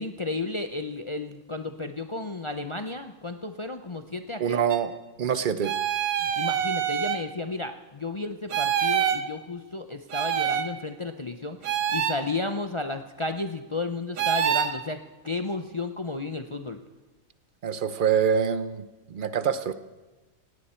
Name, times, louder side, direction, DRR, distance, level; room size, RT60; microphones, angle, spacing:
voice 1, 0.0-4.6 6.2-15.0 15.2-16.8, left 3 dB, 40° left, 7 dB, 0.4 m, -33 dB
voice 2, 4.4-4.9 5.2-5.7 17.6-19.7, right 7 dB, 45° right, 12 dB, 0.8 m, -25 dB
sound 1, 4.7-4.8 5.6-7.2 8.5-9.2 10.1-10.7 11.6-12.2 14.2-14.7, right 9 dB, 85° right, 1.3 m, -26 dB
18.5 x 17.0 x 4.4 m, 1.2 s
omnidirectional pair, 1.4 m